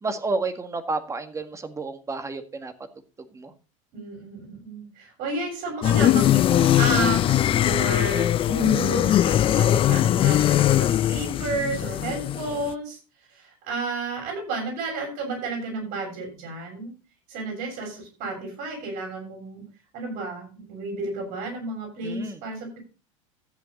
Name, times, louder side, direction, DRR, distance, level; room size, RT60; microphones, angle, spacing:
voice 1, 0.0-2.7 3.3-3.5 22.0-22.4, right 3 dB, 15° right, 8 dB, 1.7 m, -30 dB
voice 2, 3.9-13.0 13.3-16.9 17.3-19.6 19.9-22.8, right 3 dB, 60° right, 3 dB, 7.2 m, -32 dB
sound 1, 5.8-12.7, left 12 dB, 30° left, 0.5 m, -21 dB
14.0 x 7.6 x 4.2 m, 0.33 s
hypercardioid pair, 100°, 17 cm